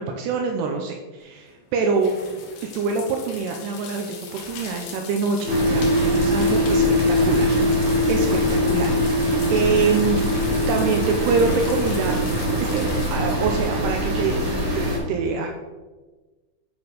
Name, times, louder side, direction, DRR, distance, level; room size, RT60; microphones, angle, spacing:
voice 1, 0.0-2.1 2.7-12.2 12.6-12.8 13.1-14.4 14.7-15.5, right 4 dB, 90° right, 3 dB, 2.4 m, -25 dB
sound 1, 1.2-14.4, left 5 dB, 70° left, 2.2 m, -40 dB
sound 2, 5.4-15.0, equal, 40° right, 2.1 m, -22 dB
9.3 x 4.4 x 5.0 m, 1.3 s
omnidirectional pair, 5.5 m